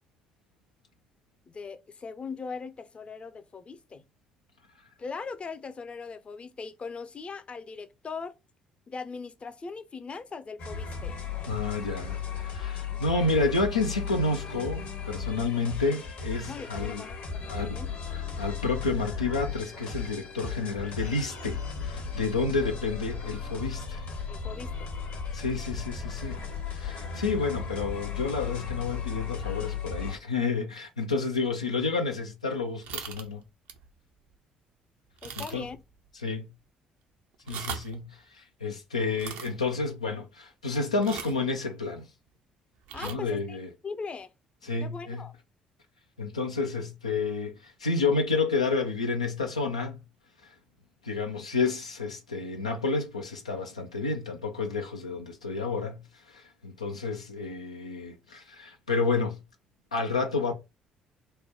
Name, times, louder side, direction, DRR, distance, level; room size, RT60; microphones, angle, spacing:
voice 1, 1.5-4.0 5.0-8.4 8.9-11.2 16.5-17.9 24.3-24.9 35.2-35.8 42.9-43.6 43.8-44.3 44.8-45.3, left 4 dB, 35° left, 0.6 m, -40 dB
sound 1, 10.6-30.1, left 6 dB, 60° left, 1.2 m, -36 dB
voice 2, 11.5-17.0 17.5-17.8 18.1-24.0 25.3-26.4 26.7-33.4 35.4-35.6 36.2-36.5 37.5-42.1 43.0-43.7 44.6-45.2 46.2-50.0 50.4-50.5 51.0-56.0 56.3-59.4 59.9-60.5, left 3 dB, 90° left, 0.4 m, -30 dB
sound 2, 32.8-33.3 33.7-33.9 34.3-34.4 35.2-35.8 36.1-36.2 37.3-38.0 39.1-39.5 41.0-41.4 42.8-43.1, right 7 dB, 70° right, 0.5 m, -39 dB
3.2 x 2.1 x 4.2 m
figure-of-eight pair, 50°, 3 cm